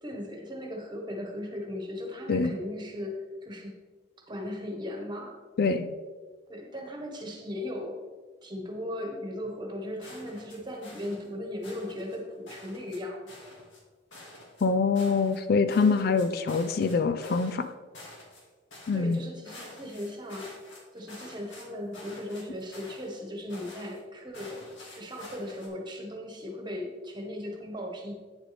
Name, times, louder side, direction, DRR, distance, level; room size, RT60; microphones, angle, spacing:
voice 1, 0.0-3.8 4.3-5.4 6.5-8.0 8.4-13.5 18.9-20.5 20.9-24.6 25.0-28.2, left 1 dB, 25° right, 1 dB, 1.5 m, -37 dB
voice 2, 5.6-6.0 14.6-17.7 18.9-19.2, left 4 dB, 55° left, 10 dB, 0.4 m, -25 dB
sound 1, 10.0-11.3 11.6-12.2 12.5-13.0 13.3-13.8 14.1-15.4 15.7-16.9 17.2-17.7 17.9-18.5 18.7-19.2 19.4-21.6 21.9-23.2 23.5-24.0 24.3-25.7, left 1 dB, 75° left, 2.2 m, -48 dB
9.0 x 7.4 x 3.4 m, 1.4 s
head